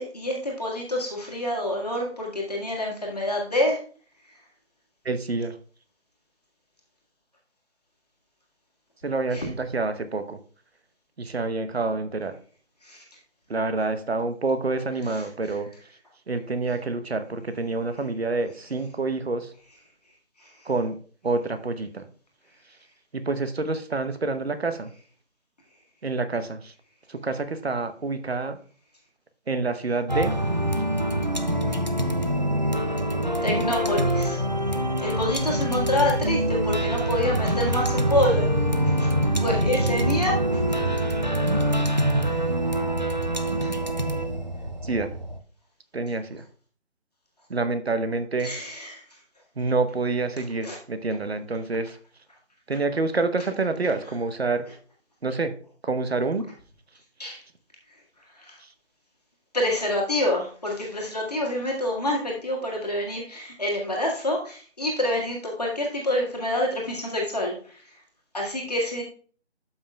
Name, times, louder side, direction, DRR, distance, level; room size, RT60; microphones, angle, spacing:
voice 1, 0.0-3.8 9.3-9.4 12.9-13.0 33.4-34.4 35.0-38.5 39.0-39.1 39.4-40.4 43.6-43.7 48.4-49.0 50.6-50.8 57.2-57.4 58.5-58.6 59.5-67.6 68.3-69.0, left 1 dB, 35° left, -1 dB, 1.6 m, -27 dB
voice 2, 5.0-5.6 9.0-10.4 11.2-12.4 13.5-15.7 16.3-19.5 20.6-20.9 21.2-22.1 23.1-24.9 26.0-26.7 27.1-28.6 29.5-30.3 44.8-45.1 45.9-46.4 47.5-48.5 49.6-52.0 52.7-54.7 55.2-55.5 55.8-56.5 58.6-58.7, right 3 dB, 60° right, 10 dB, 0.9 m, -27 dB
sound 1, 30.1-45.4, right 1 dB, 40° right, 0.5 m, -25 dB
12.0 x 5.7 x 2.3 m, 0.42 s
figure-of-eight pair, 175°, 35 cm